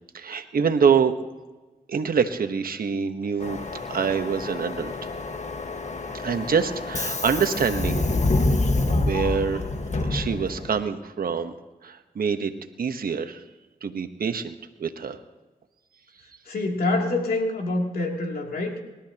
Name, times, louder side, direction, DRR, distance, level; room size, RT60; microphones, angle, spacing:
voice 1, 0.1-1.1 1.9-3.6 3.9-5.1 6.1-8.0 8.6-9.7 10.0-11.5 11.8-12.5 12.8-13.4 13.8-15.2, right 6 dB, 75° right, 8 dB, 1.2 m, -25 dB
Subway metro underground, 3.4-10.8, left 2 dB, 50° left, 1.6 m, -27 dB
voice 2, 16.4-18.7, left 2 dB, 80° left, 0 dB, 2.9 m, -26 dB
27.5 x 13.0 x 3.0 m, 1.2 s
supercardioid pair, 40°, 15 cm